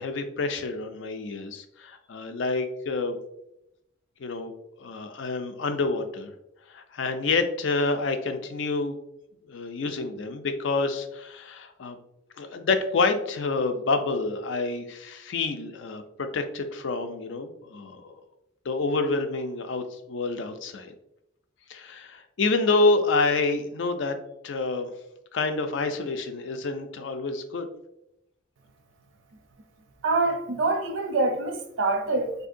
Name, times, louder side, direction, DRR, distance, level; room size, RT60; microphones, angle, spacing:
voice 1, 0.0-3.2 4.2-4.5 4.8-6.3 6.7-9.0 9.5-12.0 12.4-18.2 18.7-20.9 21.7-24.2 24.4-24.9 25.3-27.7, left 3 dB, 70° left, 0.4 m, -28 dB
voice 2, 30.0-32.3, right 3 dB, 85° right, 0.6 m, -25 dB
3.6 x 2.7 x 2.5 m
head